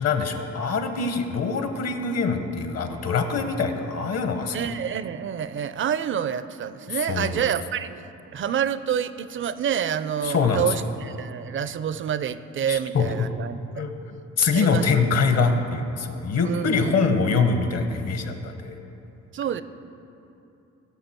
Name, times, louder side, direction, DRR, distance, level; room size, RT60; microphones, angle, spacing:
voice 1, 0.0-4.6 6.9-7.4 10.2-10.6 12.7-13.1 13.8-13.9 14.4-18.8, left 4 dB, 55° left, 6 dB, 1.3 m, -24 dB
voice 2, 4.5-8.0 8.3-13.8 14.5-14.9 16.4-17.2 19.3-19.6, right 8 dB, 40° right, 14 dB, 0.5 m, -28 dB
19.0 x 6.4 x 4.4 m, 2.9 s
cardioid pair, 90°, 30 cm